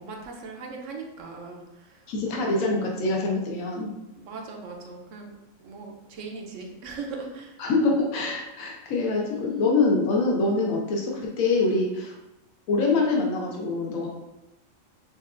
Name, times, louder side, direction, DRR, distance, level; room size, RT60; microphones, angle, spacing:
voice 1, 0.0-3.0 4.2-5.3 5.6-7.6 9.0-9.8, right 4 dB, 70° right, 1 dB, 0.9 m, -40 dB
voice 2, 2.1-3.9 7.6-12.1 12.7-14.1, left 3 dB, 85° left, -1 dB, 1.1 m, -24 dB
5.6 x 2.3 x 2.4 m, 0.91 s
omnidirectional pair, 1.4 m